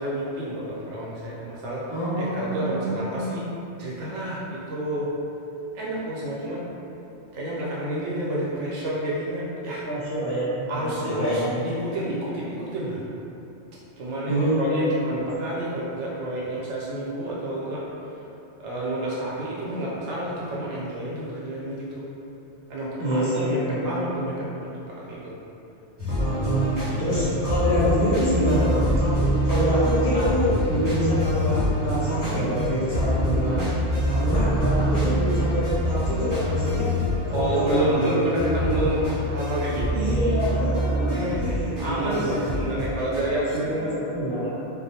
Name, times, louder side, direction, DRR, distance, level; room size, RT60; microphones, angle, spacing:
voice 1, 0.0-3.5 3.8-5.1 5.7-6.6 7.3-9.9 10.7-13.1 14.0-17.9 18.6-22.1 22.7-25.3 37.3-40.4 41.1-44.0, right 1 dB, 80° right, -6 dB, 0.9 m, -29 dB
voice 2, 1.9-3.2 9.8-11.6 14.3-15.2 23.0-24.3 26.2-33.7 34.0-36.9 37.3-39.1 39.9-42.5 42.7-42.9 43.5-44.5, equal, 50° left, -11 dB, 0.9 m, -26 dB
sound 1, 26.0-43.6, equal, 20° right, 0.6 m, -25 dB
2.4 x 2.1 x 2.8 m, 2.8 s
omnidirectional pair, 1.2 m